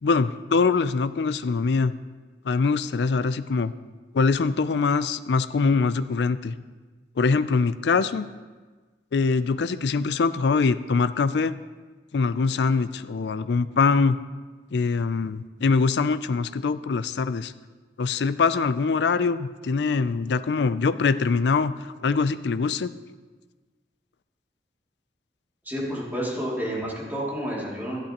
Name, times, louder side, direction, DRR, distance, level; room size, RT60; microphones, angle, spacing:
voice 1, 0.0-1.9 2.4-3.7 4.1-6.6 7.2-8.3 9.1-11.6 12.1-14.2 14.7-17.5 18.0-22.9, left 4 dB, 70° left, 14 dB, 0.4 m, -23 dB
voice 2, 25.6-28.0, equal, 10° right, -6 dB, 2.6 m, -30 dB
13.0 x 11.5 x 3.0 m, 1.3 s
head